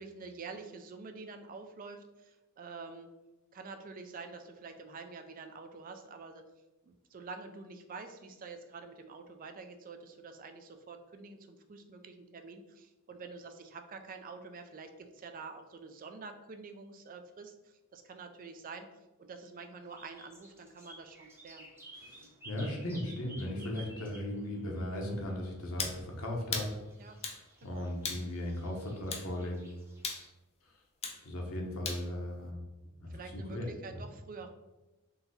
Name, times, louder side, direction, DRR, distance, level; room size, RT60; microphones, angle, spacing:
voice 1, 0.0-3.1 3.5-6.4 6.8-18.9 19.2-21.7 27.0-27.2 27.6-27.9 33.1-34.5, right 4 dB, 40° right, 6 dB, 0.4 m, -47 dB
sound 1, 19.8-30.3, right 1 dB, 10° right, 0.8 m, -55 dB
voice 2, 22.0-26.8 27.6-29.6 31.2-32.6 33.0-33.7, left 1 dB, 70° left, 0 dB, 1.0 m, -37 dB
sound 2, 25.8-26.0 26.5-26.7 27.2-27.4 28.0-28.3 29.1-29.3 30.0-30.2 31.0-31.2 31.9-32.0, left 5 dB, 30° left, 0.5 m, -36 dB
3.9 x 2.8 x 4.1 m, 1.0 s
head